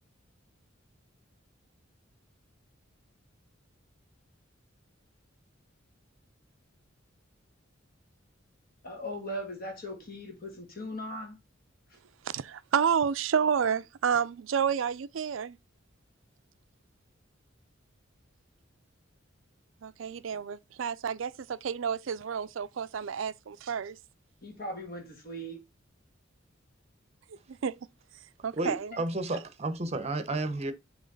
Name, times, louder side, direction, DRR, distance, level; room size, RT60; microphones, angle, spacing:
voice 1, 8.8-11.4 11.9-12.0 24.4-25.6, equal, 50° left, 1.7 m, -39 dB
voice 2, 12.2-15.6 19.8-24.0 27.5-27.8 28.4-28.9, right 7 dB, 75° right, 0.4 m, -30 dB
voice 3, 28.5-30.7, right 2 dB, 35° right, 0.8 m, -32 dB
6.2 x 3.1 x 5.2 m
head